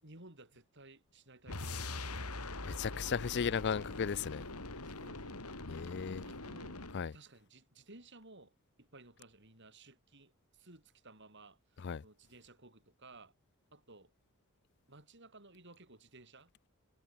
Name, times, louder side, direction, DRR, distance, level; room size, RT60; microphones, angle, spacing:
voice 1, 0.0-2.8 3.8-4.0 4.8-5.5 6.1-6.8 7.1-13.3 13.7-14.1 14.9-16.5, right 2 dB, 55° right, 5.8 m, -57 dB
sound 1, 1.5-7.1, left 2 dB, 90° left, 5.0 m, -43 dB
voice 2, 2.6-4.5 5.7-6.2 6.9-7.1 11.8-12.0, left 6 dB, 50° left, 0.4 m, -35 dB
head